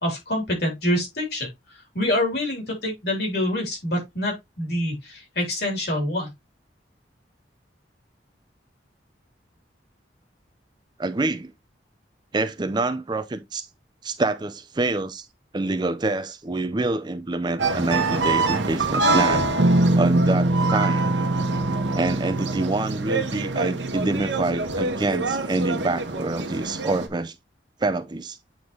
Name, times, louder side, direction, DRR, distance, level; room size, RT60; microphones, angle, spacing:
voice 1, 0.0-1.5 1.9-6.3, left 1 dB, 60° left, 3.3 m, -26 dB
voice 2, 11.0-11.5 12.3-13.7 14.0-15.3 15.5-19.5 20.0-21.1 21.9-27.3 27.8-28.4, right 2 dB, 25° right, 0.5 m, -26 dB
sound 1, 17.6-27.1, right 3 dB, 85° right, 1.0 m, -26 dB
sound 2, 19.6-24.6, right 1 dB, 60° right, 0.8 m, -24 dB
8.7 x 3.9 x 3.1 m
head